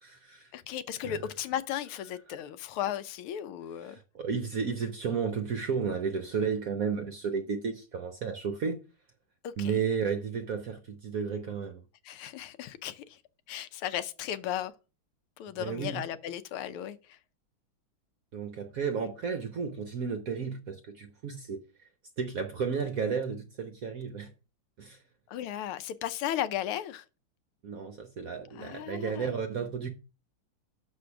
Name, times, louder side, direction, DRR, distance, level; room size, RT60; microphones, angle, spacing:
voice 1, 0.0-0.5 1.0-1.2 3.9-8.8 9.6-11.8 15.6-16.0 18.3-21.6 22.2-24.3 24.8-25.0 27.6-29.9, right 6 dB, 60° right, 0.9 m, -33 dB
voice 2, 0.5-4.0 9.4-9.8 12.0-13.2 13.5-14.7 15.4-17.2 25.3-27.1 28.5-29.3, left 11 dB, 85° left, 1.6 m, -35 dB
6.6 x 5.1 x 5.7 m
omnidirectional pair, 2.3 m